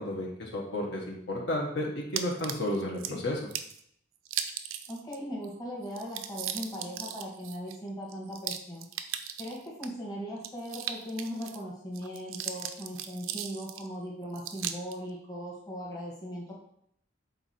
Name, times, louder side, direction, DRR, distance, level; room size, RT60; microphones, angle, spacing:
voice 1, 0.0-3.4, left 1 dB, 55° left, -3 dB, 1.3 m, -32 dB
sound 1, 2.2-3.1 3.5-3.8 4.3-5.2 5.4-5.5 5.8-9.9 10.4-11.6 11.9-13.9 14.4-15.0, right 10 dB, 85° right, 0.5 m, -37 dB
voice 2, 4.9-8.9 9.4-16.5, equal, 20° left, -4 dB, 1.4 m, -39 dB
6.9 x 4.1 x 4.3 m, 0.71 s
head